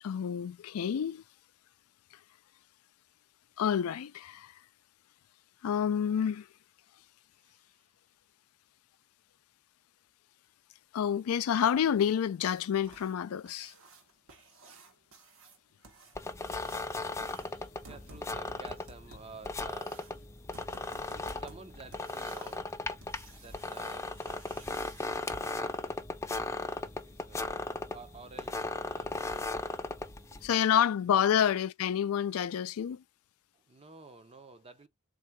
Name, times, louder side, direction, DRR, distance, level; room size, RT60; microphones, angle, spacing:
voice 1, 0.0-1.2 3.6-4.5 5.6-6.5 10.9-13.7 30.4-33.0, left 8 dB, 85° left, 0.4 m, -28 dB
voice 2, 7.4-7.9 17.8-20.1 21.0-24.6 25.4-26.0 27.0-31.3 33.5-34.9, right 4 dB, 30° right, 0.7 m, -52 dB
sound 1, 11.9-25.1 27.5-27.6 28.0-28.1 28.6-28.7 29.1-29.2 29.7-29.9 30.2-30.3 30.8-30.9, right 2 dB, 70° right, 1.0 m, -55 dB
sound 2, 16.1-30.5, left 2 dB, 15° left, 0.4 m, -37 dB
3.7 x 2.5 x 4.5 m
head